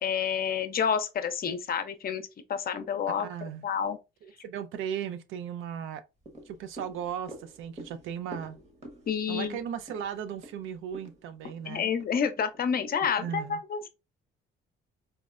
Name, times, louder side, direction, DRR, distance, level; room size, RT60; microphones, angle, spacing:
voice 1, 0.0-4.0 9.1-9.6 11.6-13.9, left 7 dB, 50° left, 0.5 m, -29 dB
voice 2, 3.2-3.6 4.2-6.0 6.5-8.6 9.3-11.9 13.2-13.6, right 8 dB, 85° right, 0.4 m, -36 dB
sound 1, 6.2-12.7 13.1-13.2, right 1 dB, 35° right, 1.0 m, -49 dB
4.3 x 2.0 x 2.4 m
cardioid pair, 90°, 20 cm